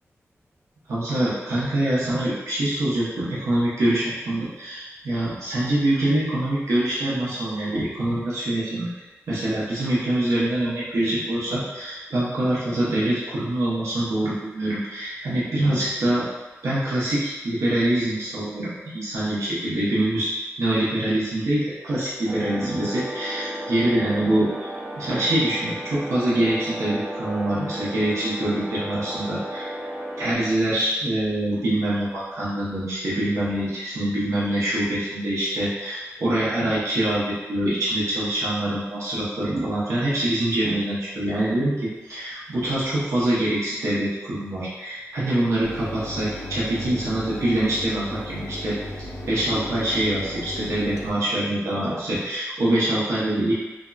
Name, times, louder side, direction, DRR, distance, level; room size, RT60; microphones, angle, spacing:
voice 1, 0.9-8.9 9.3-16.3 16.6-18.7 18.9-20.3 20.6-24.7 25.0-29.7 30.2-48.7 49.3-53.5, right 1 dB, 85° right, -9 dB, 0.8 m, -24 dB
sound 1, 22.3-30.3, right 1 dB, 45° right, 1.1 m, -34 dB
Mechanisms, 45.6-51.1, left 1 dB, 80° left, 0.4 m, -35 dB
3.6 x 2.0 x 2.3 m, 1.2 s
wide cardioid pair, 95°, 5 cm